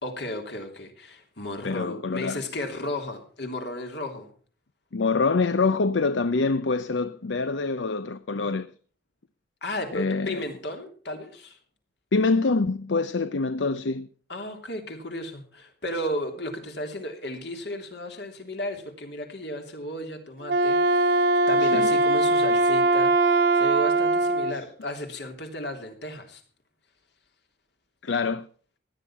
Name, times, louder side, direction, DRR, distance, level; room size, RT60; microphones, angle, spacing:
voice 1, 0.0-4.3 9.6-11.6 14.3-26.4, left 1 dB, 65° left, 3.3 m, -34 dB
voice 2, 1.6-2.4 4.9-8.7 9.9-10.4 12.1-14.1 21.6-21.9 28.0-28.5, left 4 dB, 80° left, 0.7 m, -25 dB
Wind instrument woodwind instrument, 20.4-24.6, right 2 dB, 60° right, 1.1 m, -21 dB
16.5 x 11.0 x 5.9 m
head